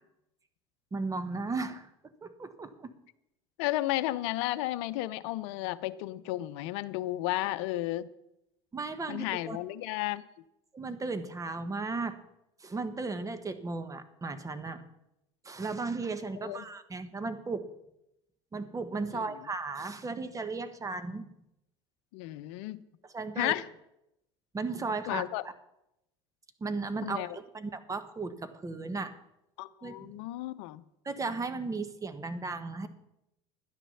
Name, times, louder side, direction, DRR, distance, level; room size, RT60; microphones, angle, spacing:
voice 1, 0.9-1.9 2.2-2.9 8.7-9.6 10.7-12.2 12.6-14.8 15.4-17.7 18.5-21.3 23.1-23.5 24.5-25.2 26.6-29.1 29.8-30.1 31.0-32.9, right 3 dB, 20° right, 10 dB, 1.4 m, -35 dB
voice 2, 3.6-8.1 9.1-10.2 16.4-16.6 19.1-19.2 22.1-22.8 23.4-23.6 25.1-25.4 27.0-27.4 29.6-30.8, left 16 dB, 70° left, 13 dB, 0.7 m, -33 dB
12.0 x 10.0 x 5.7 m, 0.84 s
hypercardioid pair, 75°, 15 cm